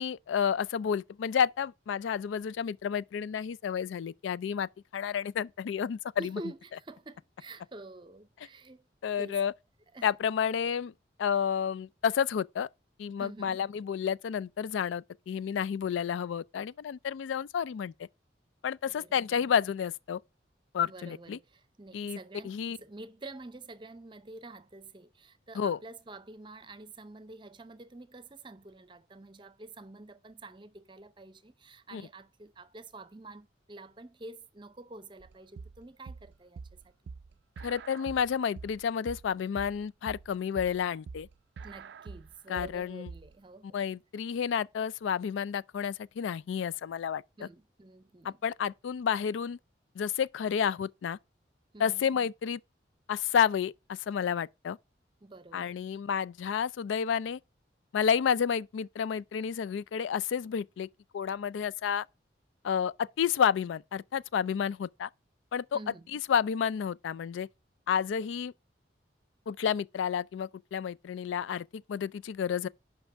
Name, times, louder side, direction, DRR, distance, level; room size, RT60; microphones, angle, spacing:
voice 1, 0.0-6.3 9.0-9.5 10.0-10.9 11.2-12.7 13.0-18.1 18.6-20.2 20.7-21.4 21.9-22.2 22.4-22.8 25.6-25.8 31.9-32.0 37.6-41.3 42.5-43.1 43.7-47.5 48.2-49.6 50.0-51.2 51.8-52.6 53.1-54.8 55.5-57.4 57.9-60.9 61.1-62.1 62.6-65.1 65.5-65.8 66.1-67.5 67.9-68.5 69.5-72.7, left 7 dB, 85° left, 0.3 m, -30 dB
voice 2, 6.2-8.9 9.2-9.4 9.9-10.1 13.2-13.5 18.8-19.4 20.8-36.9 41.6-43.8 47.4-48.4 51.7-52.1 55.2-55.8 65.7-66.1, right 2 dB, 25° right, 0.6 m, -48 dB
sound 1, 35.2-43.3, right 5 dB, 70° right, 0.3 m, -46 dB
5.7 x 5.4 x 6.0 m
head